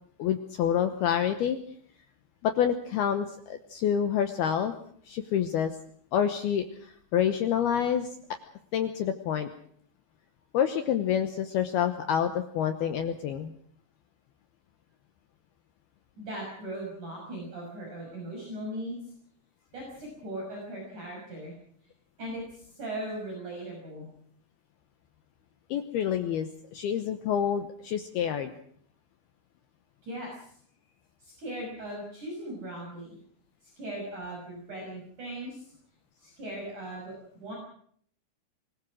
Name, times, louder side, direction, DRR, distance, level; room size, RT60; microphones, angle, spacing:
voice 1, 0.2-1.6 2.4-4.7 5.1-5.7 6.1-8.2 8.7-9.5 10.5-13.5 25.7-28.5, left 9 dB, 80° left, 8 dB, 2.3 m, -28 dB
voice 2, 16.2-19.0 19.7-21.5 22.2-24.1 30.0-30.5 31.2-33.2 33.8-35.6 36.2-37.2 37.4-37.5, right 1 dB, 35° right, -2 dB, 7.0 m, -38 dB
26.0 x 19.5 x 6.3 m, 0.62 s
omnidirectional pair, 5.8 m